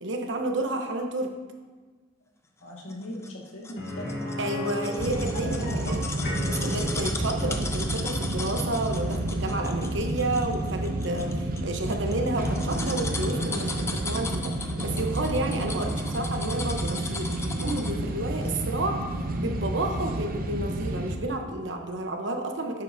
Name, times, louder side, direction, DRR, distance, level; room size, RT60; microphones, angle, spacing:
voice 1, 0.0-1.3 4.4-5.6 5.9-6.0 6.5-19.0 19.4-22.8, right 2 dB, 65° right, 4 dB, 1.0 m, -31 dB
voice 2, 2.6-4.3 5.4-6.3, left 1 dB, 85° left, -3 dB, 1.9 m, -39 dB
sound 1, 2.9-18.1 18.4-18.5, left 3 dB, 15° left, 0.5 m, -38 dB
sound 2, 3.8-13.5 13.8-13.9 16.4-16.5, left 1 dB, 50° left, 1.4 m, -37 dB
sound 3, 5.0-21.2, right 1 dB, 45° right, 0.7 m, -30 dB
10.5 x 8.2 x 2.8 m, 1.3 s
head